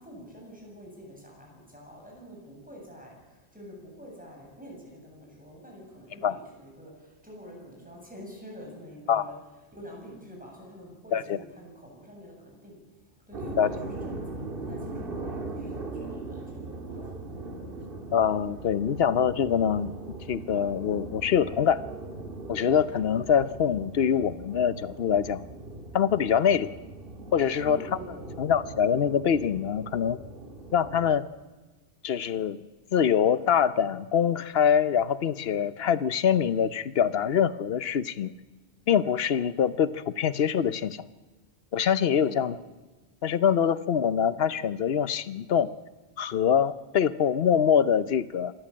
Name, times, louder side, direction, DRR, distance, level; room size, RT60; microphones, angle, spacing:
voice 1, 0.0-9.4 9.7-12.8 13.3-17.0 27.5-28.4 42.1-42.5, equal, 5° right, -2 dB, 7.9 m, -46 dB
sound 1, 13.3-31.2, right 2 dB, 55° right, 2.0 m, -40 dB
voice 2, 18.1-19.9 20.3-21.8 22.5-25.4 25.9-26.7 27.3-28.0 28.4-30.2 30.7-31.3 32.0-32.7 32.9-38.3 38.9-41.0 41.7-42.5 43.2-45.7 46.2-48.5, left 8 dB, 65° left, 15 dB, 1.0 m, -24 dB
26.0 x 14.0 x 8.7 m, 1.3 s
omnidirectional pair, 1.1 m